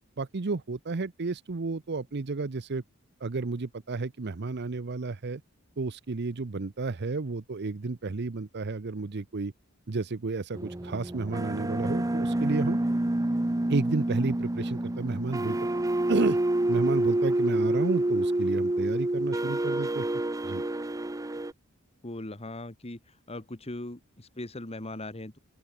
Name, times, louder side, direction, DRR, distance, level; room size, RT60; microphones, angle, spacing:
voice 1, 0.2-2.8 3.2-5.4 5.8-9.5 9.9-12.8 13.7-15.6 16.1-16.4 16.7-20.1 20.4-20.6, right 3 dB, 50° right, 0.7 m, -31 dB
sound 1, 10.5-21.5, right 1 dB, 15° right, 0.7 m, -28 dB
voice 2, 22.0-23.0 23.3-25.4, left 1 dB, 30° left, 1.8 m, -39 dB
open air
head